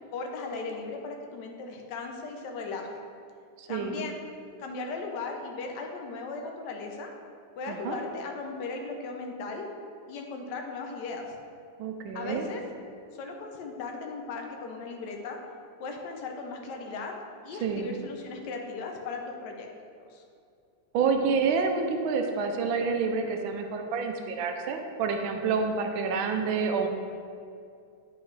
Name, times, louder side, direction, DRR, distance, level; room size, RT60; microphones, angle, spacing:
voice 1, 0.1-2.9 3.7-4.2 4.6-7.1 7.6-9.7 10.1-11.3 12.1-12.6 13.1-15.4 15.8-17.1 17.4-19.7 20.1-20.2, left 4 dB, 65° left, 2 dB, 1.3 m, -37 dB
voice 2, 3.6-4.0 7.7-8.0 11.8-12.4 17.6-17.9 20.9-26.9, right 5 dB, 90° right, 4 dB, 1.4 m, -28 dB
9.3 x 4.9 x 3.2 m, 2.4 s
omnidirectional pair, 2.1 m